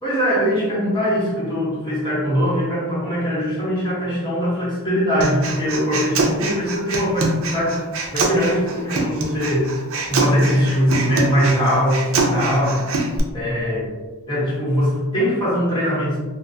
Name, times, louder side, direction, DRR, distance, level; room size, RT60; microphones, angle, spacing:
voice 1, 0.0-7.8 8.1-9.7 10.1-12.8 13.3-13.9 14.3-16.2, equal, 20° left, -8 dB, 1.2 m, -21 dB
Human voice, 5.2-13.2, right 2 dB, 65° right, 0.5 m, -24 dB
3.3 x 2.2 x 2.7 m, 1.3 s
head